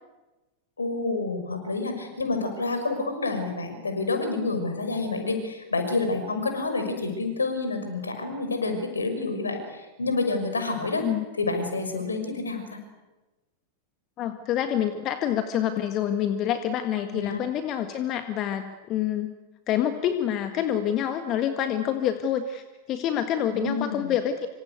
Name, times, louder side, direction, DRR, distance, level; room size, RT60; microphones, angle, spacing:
voice 1, 0.8-11.1 11.4-12.8 17.1-17.4 23.5-24.1, left 3 dB, 75° left, 6 dB, 6.1 m, -28 dB
voice 2, 14.2-19.3 19.7-24.5, left 10 dB, 35° left, 8 dB, 1.7 m, -27 dB
26.5 x 25.0 x 8.3 m, 1.1 s
figure-of-eight pair, 90°, 0 cm